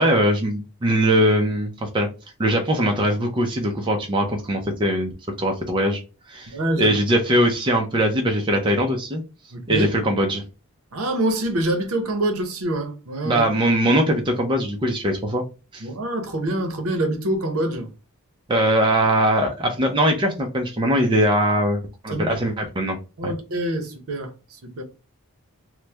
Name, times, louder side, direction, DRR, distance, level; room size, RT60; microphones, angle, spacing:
voice 1, 0.0-2.1 2.4-5.1 5.4-6.0 6.3-9.2 9.7-10.4 13.2-15.4 15.7-15.9 18.5-23.0 23.2-23.3, right 1 dB, 20° right, 0.4 m, -21 dB
voice 2, 6.5-7.0 9.5-9.9 10.9-13.4 15.8-17.9 22.1-22.4 23.2-24.8, right 1 dB, 70° right, 0.8 m, -25 dB
3.0 x 2.0 x 3.3 m
head